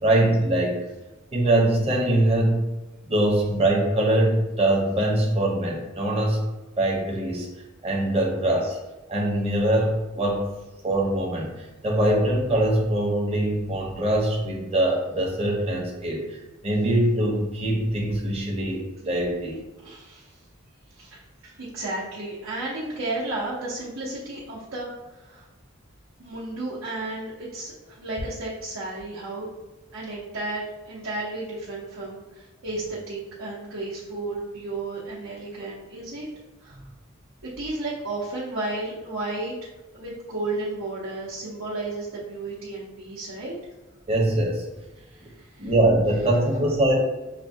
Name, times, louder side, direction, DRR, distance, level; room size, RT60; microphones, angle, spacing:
voice 1, 0.0-0.8 1.3-2.6 3.1-6.4 6.8-7.5 7.8-8.8 9.1-10.5 10.8-11.5 11.8-16.2 16.6-19.6 44.1-44.6 45.6-47.0, right 1 dB, 30° right, -2 dB, 0.8 m, -22 dB
voice 2, 19.8-20.4 20.9-25.5 26.2-29.5 29.9-36.3 36.6-36.8 37.4-39.5 39.9-43.6 45.0-45.7, right 2 dB, 80° right, -7 dB, 0.8 m, -33 dB
5.7 x 2.1 x 2.7 m, 1.1 s
head